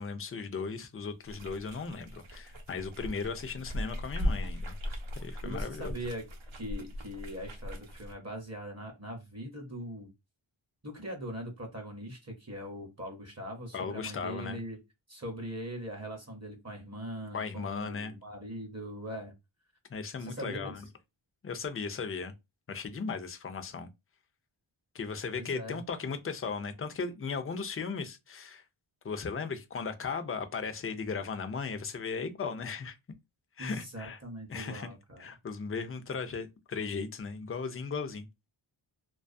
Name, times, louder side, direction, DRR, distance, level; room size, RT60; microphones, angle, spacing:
voice 1, 0.0-4.7 5.1-6.0 13.7-14.6 17.3-18.1 19.9-20.8 21.4-22.3 22.7-23.9 24.9-28.6 29.0-33.0 33.6-34.2 34.5-34.9 35.2-38.3, left 5 dB, 30° left, 0.4 m, -37 dB
sound 1, 1.2-8.1, left 1 dB, 70° right, 0.6 m, -38 dB
voice 2, 5.4-6.3 6.5-10.1 10.8-14.8 15.1-19.3 20.2-20.7 25.3-25.8 33.6-35.3, equal, 30° right, 0.7 m, -41 dB
2.3 x 2.2 x 2.5 m
wide cardioid pair, 45°, 50 cm